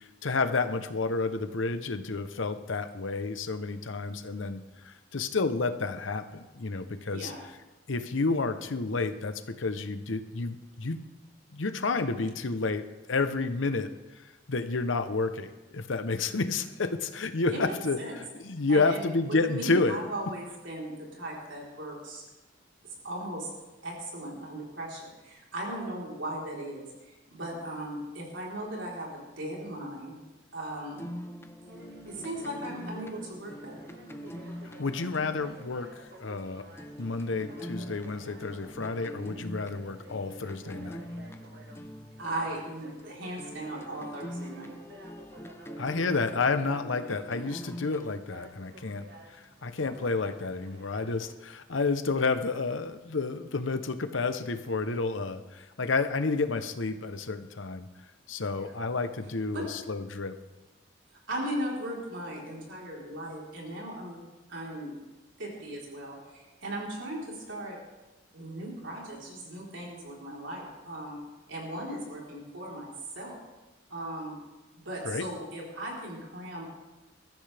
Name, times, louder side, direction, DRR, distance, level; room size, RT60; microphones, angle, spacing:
voice 1, 0.0-7.3 7.9-11.0 11.5-20.0 34.8-36.6 37.0-41.0 45.8-49.1 49.3-57.9 58.3-60.3 75.0-75.2, left 3 dB, 90° left, 9 dB, 0.9 m, -30 dB
voice 2, 7.1-7.4 17.5-18.1 18.7-22.2 23.0-23.5 23.8-30.2 30.5-31.1 32.1-33.8 42.2-44.7 58.5-58.7 59.4-59.7 61.3-64.2 64.5-65.0 65.4-67.8 68.3-71.2 71.5-73.4 73.9-74.4 74.8-76.6, right 1 dB, 80° right, -3 dB, 4.1 m, -37 dB
sound 1, 30.9-43.0 43.4-48.2, equal, 15° left, 0.7 m, -44 dB
sound 2, 31.7-51.3, right 1 dB, 55° right, 1.7 m, -52 dB
22.0 x 14.0 x 3.5 m, 1.1 s
head